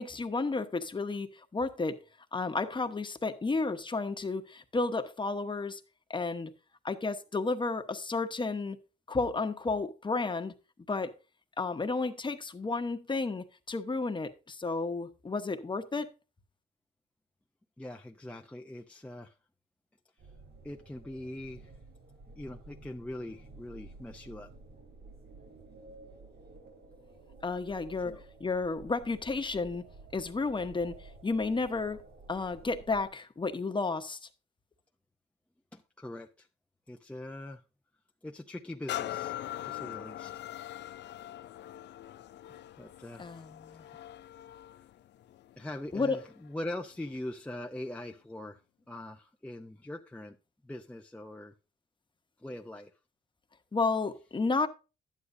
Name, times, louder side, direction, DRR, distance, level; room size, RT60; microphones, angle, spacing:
voice 1, 0.0-2.0 2.3-5.8 6.1-6.5 6.8-8.8 9.1-10.5 10.9-11.1 11.6-16.1 27.4-29.9 30.1-32.0 32.3-34.2 43.2-43.8 45.9-46.2 53.7-54.7, left 3 dB, 25° left, 1.1 m, -32 dB
voice 2, 17.8-19.3 20.6-21.7 22.3-24.5 28.0-28.2 35.7-36.5 36.9-37.6 38.2-39.4 39.6-40.3 42.8-43.2 45.6-48.6 48.9-50.4 50.6-51.5 52.4-52.9, left 1 dB, 5° left, 0.6 m, -42 dB
sound 1, 20.2-33.1, right 3 dB, 55° right, 4.5 m, -52 dB
sound 2, 38.9-46.5 47.1-47.2, left 13 dB, 60° left, 0.5 m, -42 dB
11.5 x 9.7 x 2.6 m
cardioid pair, 90°, 20 cm